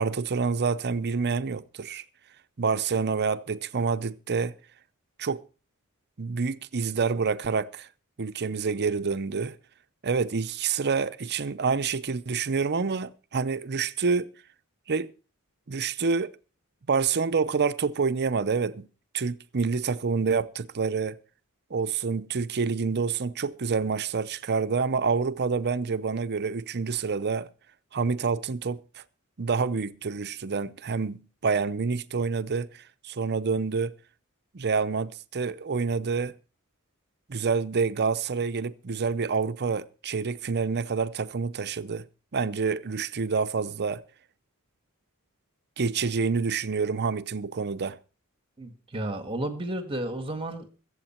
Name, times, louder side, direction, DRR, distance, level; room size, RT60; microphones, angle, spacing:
voice 1, 0.0-2.0 2.6-4.6 5.2-5.4 6.2-7.9 8.2-9.6 10.0-14.3 14.9-15.1 15.7-16.3 16.9-18.9 19.1-21.2 21.7-27.5 27.9-28.8 29.4-33.9 34.5-36.4 37.3-42.1 42.3-44.0 45.8-48.0, right 5 dB, 50° right, 0.7 m, -27 dB
voice 2, 48.6-50.7, right 1 dB, 25° right, 1.7 m, -32 dB
22.5 x 8.0 x 4.4 m
head